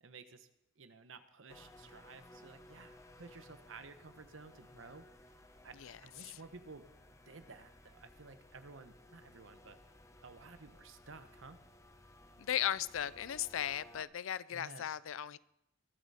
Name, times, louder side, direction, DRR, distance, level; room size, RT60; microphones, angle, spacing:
voice 1, 0.0-0.5 0.8-5.1 5.6-6.9 7.3-9.8 10.2-11.6 14.5-14.9, right 4 dB, 70° right, 10 dB, 1.0 m, -54 dB
sound 1, 1.5-14.0, left 1 dB, 15° left, 0.8 m, -59 dB
voice 2, 5.8-6.3 12.4-15.4, left 10 dB, 75° left, 19 dB, 0.4 m, -37 dB
21.5 x 8.2 x 4.2 m, 0.83 s
head